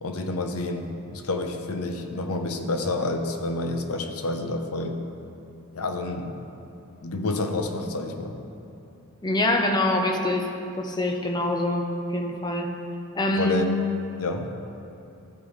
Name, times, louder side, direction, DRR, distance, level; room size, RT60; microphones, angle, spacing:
voice 1, 0.0-5.0 5.7-6.3 7.0-8.4 13.3-13.7 14.2-14.5, left 2 dB, 90° left, 5 dB, 0.8 m, -29 dB
voice 2, 9.2-10.5 10.8-12.7 13.1-13.6, left 1 dB, 20° left, 3 dB, 0.7 m, -25 dB
13.0 x 8.5 x 3.2 m, 2.8 s
head